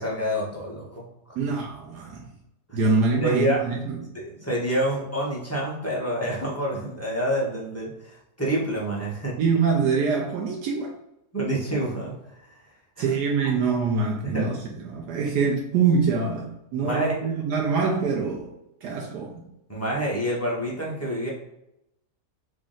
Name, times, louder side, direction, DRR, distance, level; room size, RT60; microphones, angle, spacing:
voice 1, 0.0-1.4 2.7-2.8 3.2-3.6 4.3-9.3 11.3-12.1 13.0-13.1 14.2-14.5 16.8-17.2 19.7-21.3, right 1 dB, 20° left, -5 dB, 0.3 m, -27 dB
voice 2, 1.4-2.2 2.7-4.1 9.4-10.9 13.0-18.5 18.8-19.5, right 5 dB, 80° right, -1 dB, 1.2 m, -25 dB
3.3 x 2.6 x 3.7 m, 0.86 s
omnidirectional pair, 1.7 m